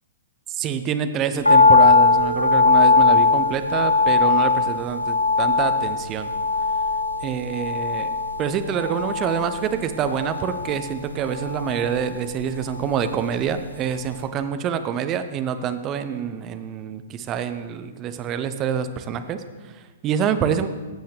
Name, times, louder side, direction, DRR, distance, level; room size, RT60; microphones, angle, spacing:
voice 1, 0.5-6.3 7.2-8.1 8.4-20.7, right 8 dB, 25° right, 10 dB, 0.6 m, -26 dB
sound 1, 1.4-13.7 14.0-14.1, left 4 dB, 80° left, 0.8 m, -20 dB
15.0 x 7.9 x 3.4 m, 1.3 s
figure-of-eight pair, 115°, 0 cm